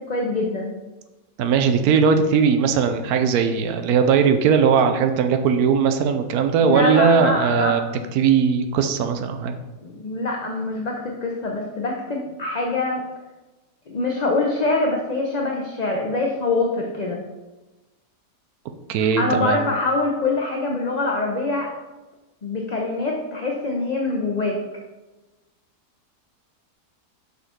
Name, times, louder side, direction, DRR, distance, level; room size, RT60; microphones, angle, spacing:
voice 1, 0.1-0.7 6.6-7.8 9.8-13.0 13.9-17.2 19.0-21.7 22.4-24.6, left 2 dB, 35° left, 0 dB, 0.7 m, -24 dB
voice 2, 1.4-7.8 8.1-9.6 18.9-19.6, right 6 dB, 80° right, 7 dB, 1.2 m, -19 dB
6.6 x 5.6 x 4.4 m, 1.1 s
omnidirectional pair, 1.6 m